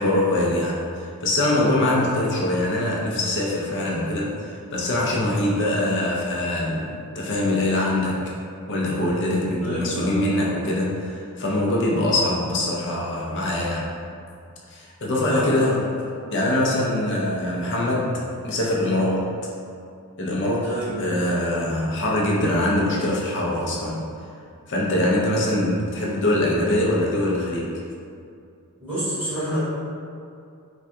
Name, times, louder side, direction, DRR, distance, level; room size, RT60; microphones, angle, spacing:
voice 1, 0.0-8.3 8.7-13.9 14.7-15.7 16.3-18.1 18.4-19.3 20.2-24.0 24.7-27.7, left 1 dB, 55° left, -3 dB, 0.5 m, -23 dB
voice 2, 9.6-10.2 15.3-15.8 20.6-20.9 28.8-29.6, right 1 dB, 10° right, -15 dB, 1.2 m, -28 dB
3.3 x 2.2 x 2.7 m, 2.4 s
head